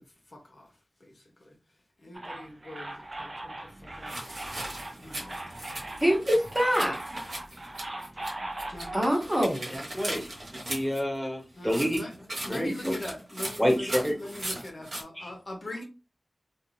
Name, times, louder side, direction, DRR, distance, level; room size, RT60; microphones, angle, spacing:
voice 1, 0.3-0.7 1.2-1.5 2.0-4.5 5.0-5.4 7.5-7.6 8.7-9.1 11.6-15.8, left 1 dB, 50° left, 0.7 m, -42 dB
sound 1, 2.1-9.0, right 1 dB, 40° right, 0.6 m, -40 dB
sound 2, 4.1-8.3 8.6-11.0 11.6-15.0, right 1 dB, 90° right, 1.1 m, -38 dB
voice 2, 6.0-7.0 8.9-9.7, equal, 15° right, 1.0 m, -25 dB
voice 3, 9.7-10.3 10.7-12.0 12.5-13.0 13.6-14.2 15.1-15.3, equal, 5° left, 1.2 m, -28 dB
2.4 x 2.3 x 3.0 m
wide cardioid pair, 85°, 0 cm